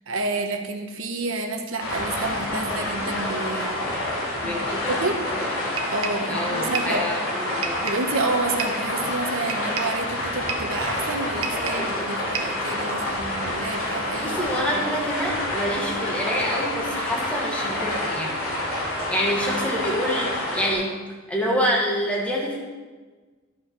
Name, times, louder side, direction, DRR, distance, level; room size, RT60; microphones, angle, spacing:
voice 1, 0.1-3.8 4.4-4.6 4.9-5.2 5.9-7.1 7.8-14.4 14.7-14.9, right 2 dB, 65° right, 5 dB, 1.1 m, -29 dB
sound 1, 1.8-20.7, left 1 dB, 85° left, 3.8 m, -28 dB
voice 2, 4.4-4.9 5.3-5.5 6.3-7.9 14.2-18.5 19.1-20.9 21.3-22.6, equal, 5° left, -3 dB, 1.7 m, -27 dB
sound 2, 5.8-6.3 6.7-7.0 7.6-8.1 8.6-8.9 9.5-10.0 10.5-10.8 11.4-11.9 12.3-12.6, right 6 dB, 85° right, 1.1 m, -31 dB
13.0 x 5.8 x 5.3 m, 1.4 s
head